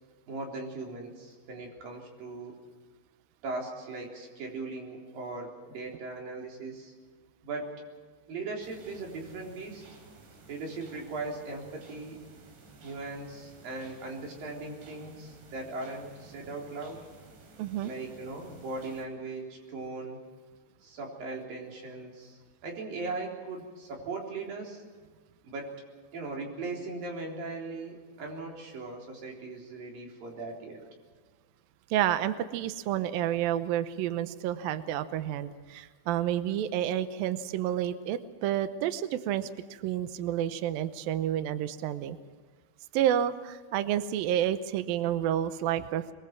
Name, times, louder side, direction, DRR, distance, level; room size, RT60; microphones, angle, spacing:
voice 1, 0.3-2.5 3.4-6.9 7.4-7.8 8.3-9.8 10.5-12.2 12.8-17.1 17.8-20.2 20.8-24.8 25.4-25.7 26.1-30.8, right 3 dB, 50° right, 0 dB, 5.2 m, -39 dB
sound 1, 8.6-19.1, right 3 dB, 70° right, 5.6 m, -54 dB
voice 2, 17.6-17.9 31.9-42.2 42.9-46.1, right 11 dB, 90° right, 11 dB, 2.0 m, -30 dB
23.0 x 22.5 x 6.0 m, 1.5 s
omnidirectional pair, 5.4 m